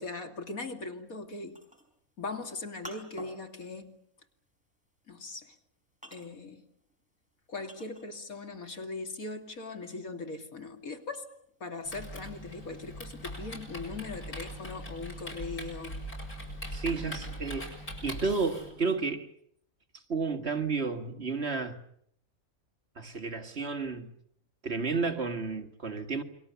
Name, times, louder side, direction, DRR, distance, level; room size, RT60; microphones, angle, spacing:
voice 1, 0.0-1.6 2.2-4.0 5.1-5.6 6.1-6.6 7.5-11.3 11.6-16.0 16.9-17.3, left 3 dB, 75° left, 3.0 m, -40 dB
sound 1, 1.1-8.4 8.8-11.7, equal, 5° right, 4.6 m, -52 dB
Typing, 11.8-18.7, equal, 90° left, 7.5 m, -41 dB
voice 2, 16.7-17.7 18.0-19.3 20.1-21.8 23.0-24.1 24.6-26.2, right 4 dB, 45° right, 2.1 m, -31 dB
29.0 x 22.5 x 7.0 m
omnidirectional pair, 1.5 m